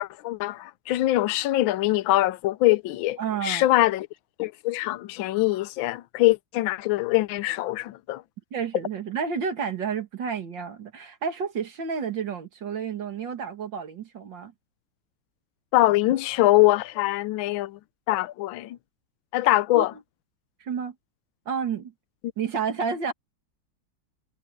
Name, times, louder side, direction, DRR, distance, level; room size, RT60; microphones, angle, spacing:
voice 1, 0.0-4.1 4.4-8.2 15.7-17.8 18.1-18.8 19.3-19.9, left 17 dB, 85° left, 1.4 m, -23 dB
voice 2, 3.2-3.7 8.5-14.5 19.7-19.9 20.6-20.9 21.5-21.9 22.4-23.1, right 6 dB, 65° right, 2.6 m, -30 dB
omnidirectional pair, 2.2 m